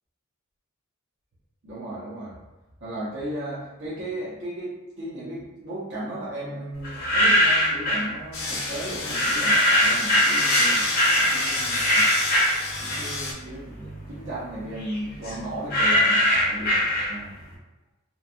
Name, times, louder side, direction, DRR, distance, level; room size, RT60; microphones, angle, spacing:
voice 1, 1.6-2.4 2.8-12.1 12.8-17.3, right 1 dB, 60° right, -9 dB, 0.7 m, -35 dB
sound 1, 6.8-8.1 9.1-13.3 13.7-17.4, equal, 45° left, 0.8 m, -22 dB
sound 2, 8.3-13.3, left 3 dB, 75° left, 0.6 m, -29 dB
3.0 x 2.2 x 2.5 m, 1.1 s
head